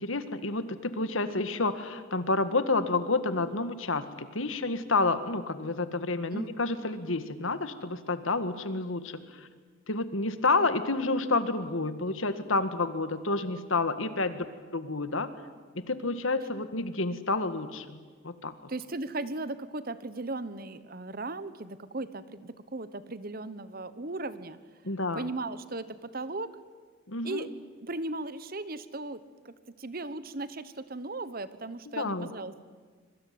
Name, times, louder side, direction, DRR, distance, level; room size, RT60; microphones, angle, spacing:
voice 1, 0.0-9.4 9.9-14.5 14.7-15.3 15.8-18.0 18.2-18.5 24.8-25.3 27.1-27.5 31.9-32.3, left 3 dB, 75° left, 11 dB, 1.9 m, -29 dB
voice 2, 18.7-24.6 25.1-26.6 27.2-27.5 27.8-32.6, right 2 dB, 45° right, 15 dB, 1.2 m, -37 dB
25.5 x 23.0 x 9.5 m, 1.5 s
head